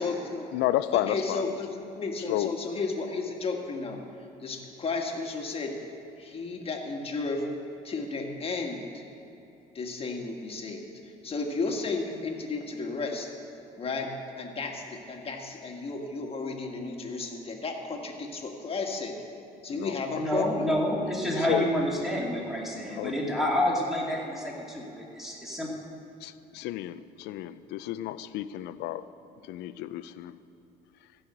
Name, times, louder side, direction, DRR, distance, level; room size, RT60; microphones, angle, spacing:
voice 1, 0.0-0.5 0.9-4.0 4.4-5.7 6.2-7.4 7.8-9.0 9.7-10.8 11.2-13.3 13.8-14.1 14.4-19.1 19.6-20.7, left 3 dB, 35° left, 2 dB, 1.6 m, -33 dB
voice 2, 0.5-1.4 2.3-2.6 19.7-20.0 20.3-20.4 21.5-21.7 23.0-23.2 26.2-29.0 29.4-30.3, left 14 dB, 85° left, 14 dB, 0.5 m, -31 dB
voice 3, 20.2-25.7, equal, ahead, -3 dB, 2.4 m, -28 dB
15.0 x 5.6 x 7.9 m, 3.0 s
cardioid pair, 110°, 17 cm